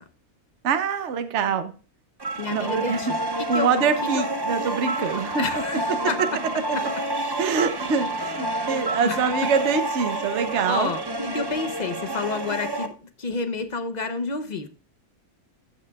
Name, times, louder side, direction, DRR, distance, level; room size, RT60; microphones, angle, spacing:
voice 1, 0.6-1.7 2.5-3.0 3.5-5.4 7.4-10.9, right 6 dB, 55° right, 9 dB, 1.1 m, -24 dB
sound 1, 2.2-12.9, right 1 dB, 35° right, 0.3 m, -29 dB
voice 2, 2.4-3.7 4.1-4.2 5.4-6.2 8.6-9.5 10.6-14.7, left 4 dB, 40° left, 9 dB, 0.6 m, -30 dB
15.5 x 6.1 x 2.3 m, 0.36 s
omnidirectional pair, 1.6 m